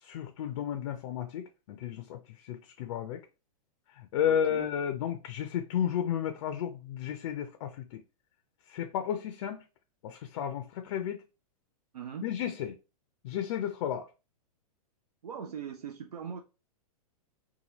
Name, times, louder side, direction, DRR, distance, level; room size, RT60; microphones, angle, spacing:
voice 1, 0.0-3.2 3.9-8.0 8.7-9.6 10.0-11.2 12.2-12.8 13.2-14.1, left 9 dB, 55° left, 0.4 m, -33 dB
voice 2, 4.3-4.7 11.9-12.3 15.2-16.4, right 7 dB, 85° right, 0.5 m, -40 dB
2.8 x 2.4 x 2.9 m
hypercardioid pair, 115°, 19 cm